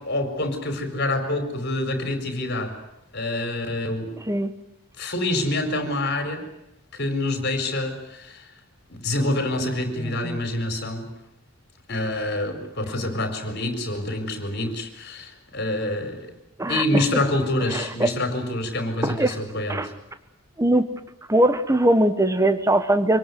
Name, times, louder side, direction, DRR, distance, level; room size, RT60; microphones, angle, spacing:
voice 1, 0.0-2.7 3.1-4.2 5.0-6.4 6.9-8.5 8.9-11.1 11.9-16.3 16.7-19.9, left 1 dB, 50° left, 7 dB, 4.6 m, -26 dB
voice 2, 10.0-10.4 16.6-17.0 17.7-18.1 19.0-19.4 19.7-19.9 20.6-20.9 21.3-23.2, right 1 dB, 15° right, 10 dB, 1.3 m, -21 dB
25.5 x 19.0 x 9.5 m, 0.84 s
head